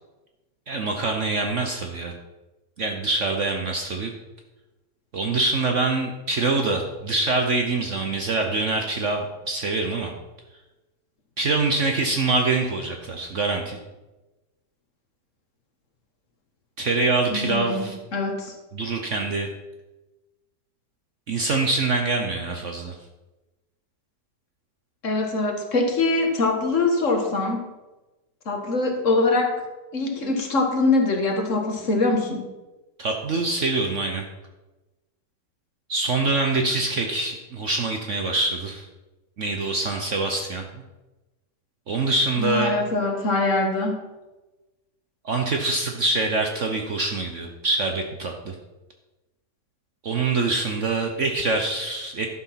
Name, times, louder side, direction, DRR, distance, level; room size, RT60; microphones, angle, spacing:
voice 1, 0.7-2.1 2.8-4.1 5.1-10.1 11.4-13.8 16.8-18.0 18.7-19.5 21.3-22.9 33.0-34.3 35.9-38.9 39.4-40.7 41.9-42.7 45.2-48.5 50.0-52.3, right 3 dB, 50° right, 3 dB, 1.1 m, -24 dB
voice 2, 17.3-18.5 25.0-27.6 28.5-29.5 29.9-32.4 42.4-44.1, left 3 dB, 45° left, 3 dB, 1.7 m, -23 dB
11.0 x 6.6 x 5.8 m, 1.1 s
omnidirectional pair, 1.9 m